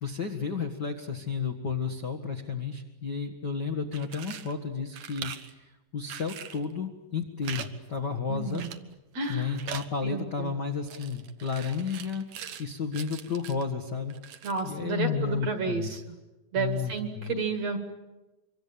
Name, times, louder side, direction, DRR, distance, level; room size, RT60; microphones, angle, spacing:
voice 1, 0.0-8.6 9.3-12.3 12.6-14.1 14.6-15.9 16.5-17.3, left 6 dB, 70° left, 4 dB, 1.0 m, -32 dB
sound 1, 3.8-4.5 4.9-5.5 6.1-6.6 7.4-7.7 7.9-8.0 8.5-8.9 9.2-9.9 10.9-12.7 12.9-13.7 14.1-14.7, right 9 dB, 70° right, 1.6 m, -42 dB
voice 2, 8.3-8.8 9.1-9.5 10.0-10.5 14.4-16.2 16.5-17.8, right 4 dB, 50° right, 8 dB, 2.3 m, -31 dB
25.5 x 24.5 x 8.7 m, 1.1 s
omnidirectional pair, 5.0 m